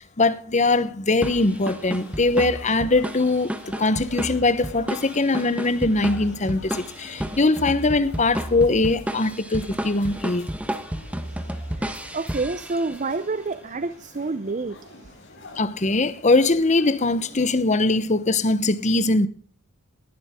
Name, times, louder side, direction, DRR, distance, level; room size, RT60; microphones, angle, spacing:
voice 1, 0.0-3.5 3.8-10.5 15.6-19.3, left 2 dB, 35° left, 0.9 m, -21 dB
sound 1, 1.2-13.2, equal, 5° right, 1.1 m, -32 dB
sound 2, 1.5-17.5, left 2 dB, 55° left, 6.1 m, -47 dB
voice 2, 11.8-14.8, right 3 dB, 35° right, 0.6 m, -28 dB
19.5 x 12.0 x 3.6 m
head